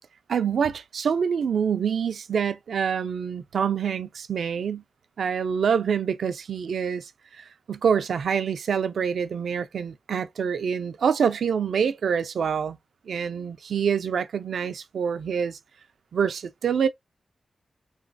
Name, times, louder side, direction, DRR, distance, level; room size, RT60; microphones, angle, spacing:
voice 1, 0.3-4.8 5.2-12.8 13.1-15.6 16.1-16.9, right 7 dB, 85° right, 0.4 m, -26 dB
3.1 x 3.0 x 2.6 m
cardioid pair, 75°, 0 cm